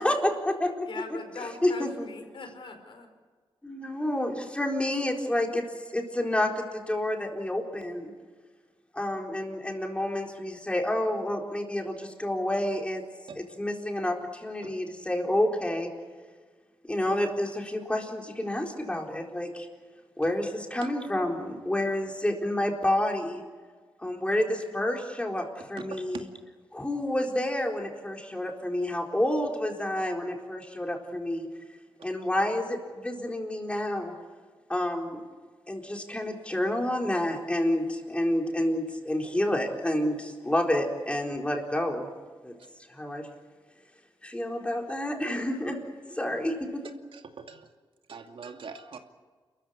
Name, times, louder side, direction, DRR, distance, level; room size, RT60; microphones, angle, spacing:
voice 1, 0.0-0.9 1.4-2.0 3.6-5.6 5.9-8.1 8.9-13.0 13.4-15.9 16.8-19.7 20.2-23.4 24.0-26.3 26.7-31.5 32.0-34.1 34.7-35.2 35.7-42.1 42.4-42.5 42.9-43.2 44.2-45.8 46.1-46.9, left 1 dB, 15° left, 1 dB, 4.2 m, -29 dB
voice 2, 0.8-3.1, left 3 dB, 65° left, 5 dB, 4.9 m, -41 dB
voice 3, 47.1-47.7 48.1-49.0, right 5 dB, 75° right, 5 dB, 2.5 m, -43 dB
29.0 x 14.5 x 10.0 m, 1.5 s
wide cardioid pair, 120°, 9 cm